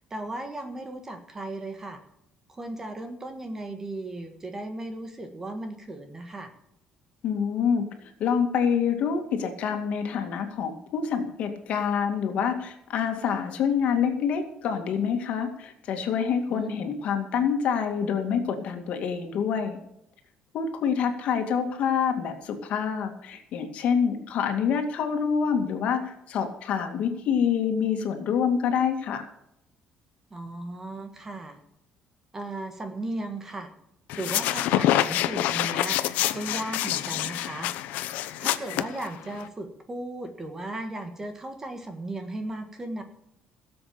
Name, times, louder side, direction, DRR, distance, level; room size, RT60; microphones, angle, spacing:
voice 1, 0.1-2.0 2.5-6.5 16.5-16.9 30.3-31.6 32.3-33.7 34.1-36.0 36.3-37.7 38.4-43.0, right 2 dB, 15° right, 6 dB, 1.5 m, -36 dB
voice 2, 7.2-19.8 20.5-29.3, left 7 dB, 55° left, 5 dB, 2.3 m, -26 dB
sound 1, 34.1-39.5, left 13 dB, 90° left, 0.9 m, -27 dB
17.5 x 7.8 x 6.9 m, 0.78 s
cardioid pair, 175°, 3 cm